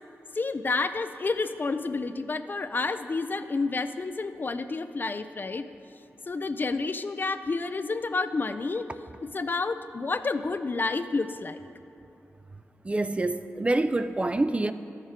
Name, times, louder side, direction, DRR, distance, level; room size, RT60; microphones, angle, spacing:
voice 1, 0.3-5.7 6.3-8.9 9.2-11.6, left 3 dB, 40° left, 10 dB, 0.4 m, -30 dB
voice 2, 12.8-14.7, right 2 dB, 25° right, 11 dB, 0.3 m, -26 dB
13.5 x 6.5 x 3.6 m, 2.7 s
cardioid pair, 60°, 5 cm